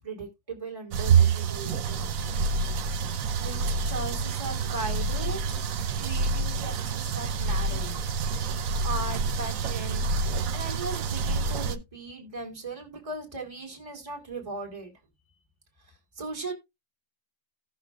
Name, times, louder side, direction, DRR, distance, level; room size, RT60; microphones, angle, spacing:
voice 1, 0.0-2.4 2.9-5.6 6.0-8.0 8.8-14.9 15.9-16.5, right 3 dB, 15° right, 2.4 m, -38 dB
sound 1, 0.9-11.8, right 4 dB, 60° right, 0.9 m, -27 dB
16.5 x 6.6 x 2.3 m
omnidirectional pair, 2.0 m